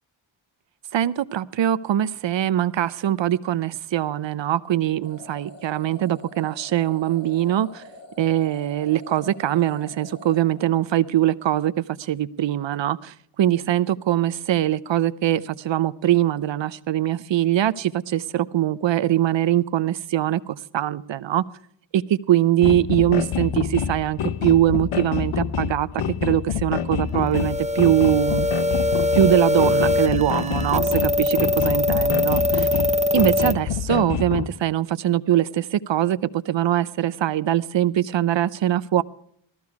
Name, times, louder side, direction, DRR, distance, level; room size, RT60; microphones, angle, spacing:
voice 1, 0.9-7.8 8.2-21.4 21.9-28.5 29.2-32.7 33.1-39.0, right 12 dB, 65° right, 16 dB, 0.6 m, -22 dB
sound 1, 5.0-11.2, left 2 dB, 35° left, 4.0 m, -45 dB
sound 2, 22.6-34.5, left 8 dB, 85° left, 0.9 m, -27 dB
sound 3, 27.3-33.5, left 1 dB, 15° right, 0.4 m, -22 dB
14.5 x 14.5 x 4.7 m, 0.66 s
wide cardioid pair, 170°, 48 cm